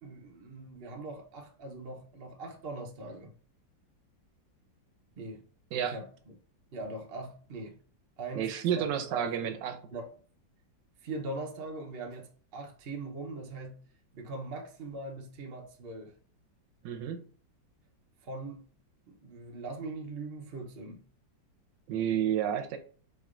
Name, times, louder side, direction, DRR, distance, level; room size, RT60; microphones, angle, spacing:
voice 1, 0.0-3.3 5.2-5.4 5.8-6.1 6.7-7.8 8.2-8.5 8.7-9.5 9.9-10.0 11.0-13.8 14.1-16.1 18.2-18.6 19.1-21.0, right 2 dB, 60° right, 0.6 m, -41 dB
voice 2, 8.3-9.8 16.8-17.2 21.9-22.8, right 9 dB, 75° right, 1.2 m, -30 dB
4.3 x 3.2 x 2.4 m
omnidirectional pair, 2.0 m